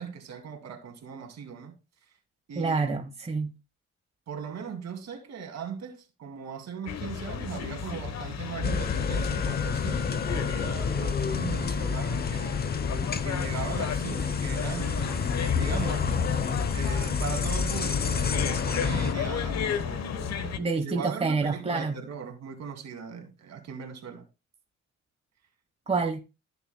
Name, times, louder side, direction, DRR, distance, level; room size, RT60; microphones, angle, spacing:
voice 1, 0.0-1.7 2.5-2.9 4.3-12.6 13.2-16.1 16.7-24.2, right 6 dB, 60° right, 2.6 m, -39 dB
voice 2, 2.5-3.5 20.6-21.9 25.9-26.2, right 4 dB, 20° right, 1.3 m, -27 dB
sound 1, 6.9-20.6, left 7 dB, 60° left, 1.1 m, -34 dB
sound 2, 8.6-19.1, left 5 dB, 30° left, 0.8 m, -29 dB
14.0 x 6.7 x 2.2 m
cardioid pair, 90°, 30 cm